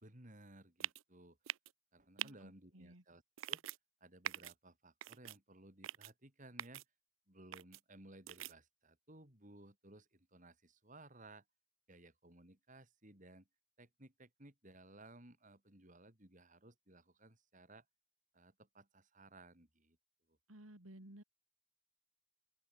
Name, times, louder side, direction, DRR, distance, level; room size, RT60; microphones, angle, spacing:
voice 1, 0.0-1.4 1.9-3.2 3.5-3.6 4.0-6.8 7.3-11.4 11.9-13.5 13.8-17.9 18.3-20.0 20.3-20.4, right 2 dB, 40° right, 4.1 m, -59 dB
sound 1, 0.8-1.0 1.5-1.7 2.2-2.3 3.4-3.8 4.2-4.5 5.0-5.4 5.8-6.1 6.6-6.8 7.5-7.8 8.3-8.5, right 13 dB, 70° right, 0.5 m, -43 dB
voice 2, 2.2-3.0 20.5-21.2, right 1 dB, 85° right, 3.7 m, -56 dB
open air
head